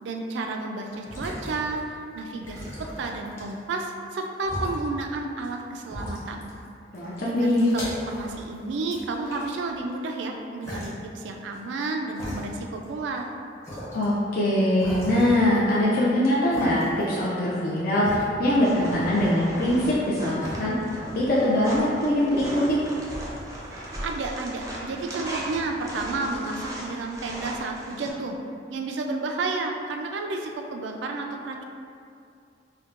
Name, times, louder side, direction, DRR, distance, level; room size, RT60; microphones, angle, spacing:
voice 1, 0.0-6.5 7.2-13.3 24.0-28.4 28.7-31.6, right 3 dB, 75° right, 3 dB, 0.3 m, -31 dB
sound 1, 0.8-1.9 2.4-3.7 4.4-4.8 5.4-5.5 5.9-6.7 6.9-8.6 8.9-9.9 10.6-10.9 11.5-11.6 12.1-12.9 13.2-13.3 13.6-14.0 14.8-16.0 16.5-17.2 17.5-20.1 20.4-20.6, equal, 15° left, 0.7 m, -38 dB
voice 2, 6.9-7.6 13.9-18.1 18.4-22.8, left 1 dB, 55° left, -7 dB, 0.4 m, -23 dB
sound 2, 18.6-28.1, right 1 dB, 20° right, 0.5 m, -37 dB
4.4 x 2.1 x 2.4 m, 2.4 s
head